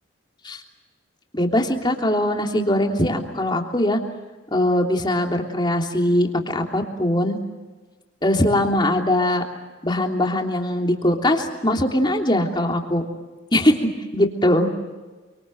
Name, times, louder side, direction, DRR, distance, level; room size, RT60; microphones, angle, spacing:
voice 1, 1.3-4.0 4.5-7.4 8.2-9.4 9.8-13.0 13.5-14.7, left 1 dB, 25° left, 2 dB, 3.2 m, -21 dB
28.0 x 25.5 x 7.9 m, 1.3 s
head